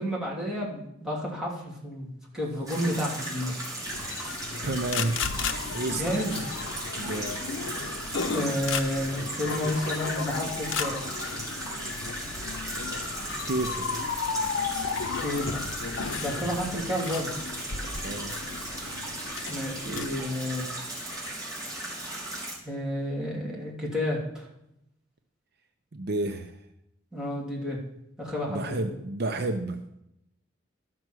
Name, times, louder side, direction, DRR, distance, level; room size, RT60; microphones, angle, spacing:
voice 1, 0.0-3.6 5.9-6.4 8.3-11.0 15.2-17.3 19.5-20.7 22.6-24.4 27.1-27.8 28.2-28.8, left 1 dB, 5° right, -5 dB, 2.7 m, -31 dB
sound 1, 2.7-22.5, right 1 dB, 20° right, 3.7 m, -36 dB
sound 2, 3.9-20.1, left 5 dB, 70° left, 0.7 m, -34 dB
voice 2, 4.6-5.2 5.7-6.0 6.9-7.4 13.4-13.9 18.0-18.4 25.9-26.6 28.5-29.8, right 2 dB, 55° right, 6 dB, 0.7 m, -30 dB
12.5 x 6.1 x 6.2 m, 0.82 s
head